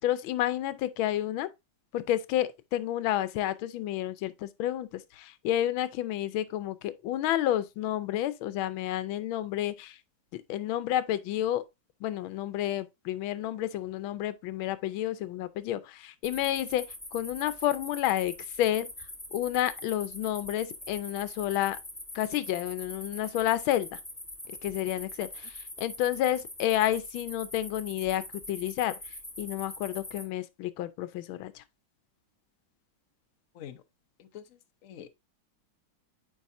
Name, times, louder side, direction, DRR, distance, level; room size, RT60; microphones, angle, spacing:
voice 1, 0.0-1.5 1.9-10.0 10.3-11.6 12.0-16.8 17.1-18.9 19.3-21.8 22.1-24.0 24.6-28.9 29.4-31.6, left 12 dB, 85° left, 1.4 m, -30 dB
sound 1, 16.2-30.2, left 1 dB, 10° left, 0.7 m, -43 dB
voice 2, 34.2-35.1, left 10 dB, 60° left, 0.8 m, -46 dB
8.4 x 4.8 x 2.5 m
omnidirectional pair, 2.2 m